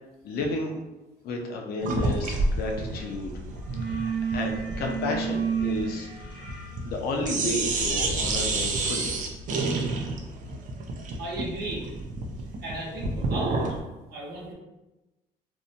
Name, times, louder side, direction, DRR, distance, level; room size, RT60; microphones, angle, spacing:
voice 1, 0.2-0.8 1.2-3.3 3.8-6.5 6.8-9.1, left 2 dB, 65° left, 1 dB, 0.5 m, -32 dB
sound 1, 1.8-7.0 7.2-13.8, right 2 dB, 50° right, 0.4 m, -29 dB
sound 2, 2.9-3.2 3.5-10.1, right 6 dB, 25° right, 0.9 m, -34 dB
voice 2, 11.2-11.9 12.6-13.8 14.1-14.5, right 1 dB, 75° right, -4 dB, 0.9 m, -35 dB
2.6 x 2.1 x 2.7 m, 1.0 s
cardioid pair, 110°, 17 cm